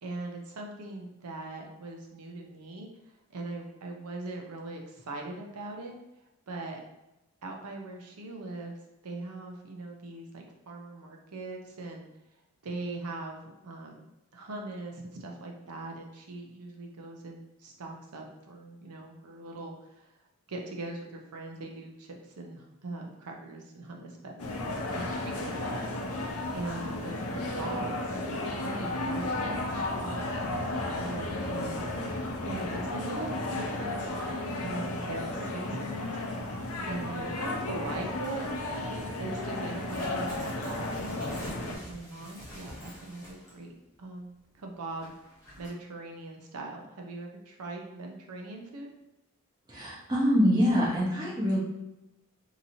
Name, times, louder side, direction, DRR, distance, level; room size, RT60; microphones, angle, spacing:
voice 1, 0.0-2.9 3.3-6.0 6.5-6.8 7.4-8.8 9.0-12.1 12.6-14.0 14.3-20.1 20.5-24.4 24.9-25.8 26.5-28.2 28.6-31.8 32.1-34.0 34.6-36.2 36.9-38.5 39.2-43.7 44.0-44.3 44.5-45.1 45.6-48.9, right 2 dB, 85° right, 1 dB, 0.6 m, -41 dB
sound 1, 24.4-41.8, left 2 dB, 75° left, 0.5 m, -33 dB
sound 2, 39.7-43.7 44.0-44.1 44.9-45.7, equal, 15° left, 0.7 m, -46 dB
voice 2, 49.7-51.6, equal, 20° right, -6 dB, 0.8 m, -25 dB
2.9 x 2.7 x 2.6 m, 0.94 s
head